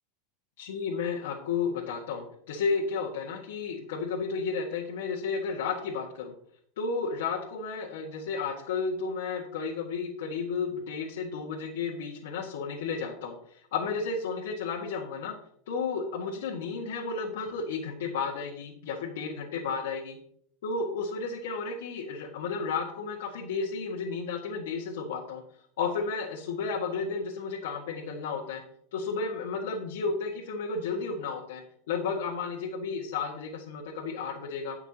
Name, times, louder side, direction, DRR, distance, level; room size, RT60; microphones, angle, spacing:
voice 1, 0.6-6.3 6.8-15.3 15.7-20.2 20.6-25.4 25.8-28.6 28.9-31.6 31.9-34.8, left 5 dB, 85° left, -4 dB, 1.9 m, -32 dB
17.0 x 6.0 x 3.0 m, 0.66 s
supercardioid pair, 130°, 0 cm